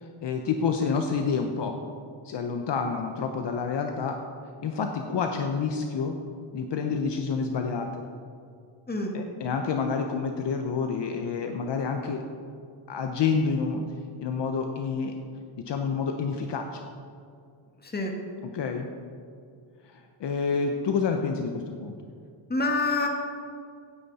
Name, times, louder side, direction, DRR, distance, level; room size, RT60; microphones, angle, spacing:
voice 1, 0.0-1.7 2.2-4.2 4.6-6.2 6.5-8.0 9.1-12.2 12.9-13.8 14.2-15.1 15.7-16.8 18.5-18.9 19.9-21.9, left 5 dB, 55° left, 4 dB, 0.9 m, -28 dB
voice 2, 17.8-18.1 22.5-23.1, left 3 dB, 20° left, 1 dB, 2.0 m, -26 dB
17.0 x 9.3 x 4.2 m, 2.3 s
cardioid pair, 125°, 50 cm